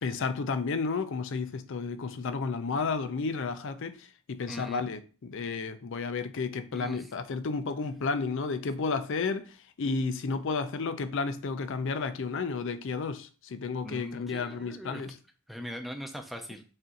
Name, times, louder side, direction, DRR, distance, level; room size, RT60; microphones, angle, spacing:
voice 1, 0.0-15.2, left 4 dB, 60° left, 0.5 m, -32 dB
voice 2, 4.5-4.8 6.7-7.0 13.8-15.0 15.5-16.6, equal, ahead, 0.5 m, -40 dB
4.2 x 2.6 x 3.7 m
head